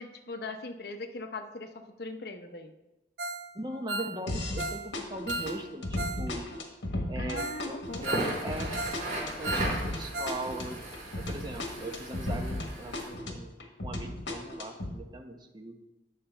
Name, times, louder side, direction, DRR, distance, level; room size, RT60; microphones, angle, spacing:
voice 1, 0.0-2.7 6.9-8.4, left 3 dB, 55° left, 6 dB, 0.7 m, -40 dB
Ringtone, 3.2-3.5 3.7-6.2 6.5-6.6 7.1-7.2 7.4-7.6 7.9-9.0 9.3-10.4 10.7-10.8 11.2-11.3, right 2 dB, 70° right, 0.6 m, -36 dB
voice 2, 3.5-6.5 7.1-8.7 9.2-10.8 11.2-13.6 13.8-15.9, right 1 dB, 25° right, 4 dB, 0.8 m, -40 dB
sound 1, 4.3-4.7 4.9-12.7 12.9-14.9, left 1 dB, 75° left, 1.3 m, -35 dB
Crackle, 7.9-13.1, right 1 dB, 40° right, 3.0 m, -37 dB
9.1 x 6.7 x 4.4 m, 1.0 s
head